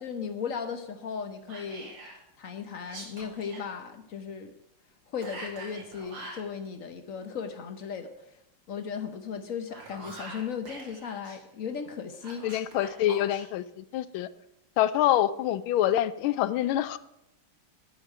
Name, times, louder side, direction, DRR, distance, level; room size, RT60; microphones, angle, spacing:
voice 1, 0.0-1.9 2.4-4.5 5.1-8.1 8.7-12.4, left 6 dB, 55° left, 8 dB, 0.9 m, -36 dB
Whispering, 1.5-2.2 2.8-3.7 5.2-6.5 9.5-11.4 12.2-13.4, right 2 dB, 80° right, 3.3 m, -44 dB
voice 2, 12.4-14.3 14.8-17.0, left 12 dB, 80° left, 16 dB, 1.3 m, -26 dB
11.5 x 5.2 x 8.5 m, 0.86 s
omnidirectional pair, 2.3 m